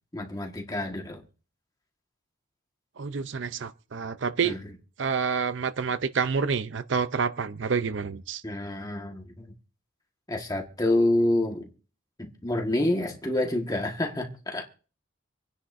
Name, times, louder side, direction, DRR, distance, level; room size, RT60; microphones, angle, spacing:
voice 1, 0.1-1.2 4.4-4.6 8.4-9.5 10.3-11.7 12.2-14.7, left 1 dB, 20° left, 1.5 m, -28 dB
voice 2, 3.0-4.6 5.0-8.4, right 5 dB, 60° right, 0.5 m, -28 dB
26.0 x 9.9 x 2.6 m
head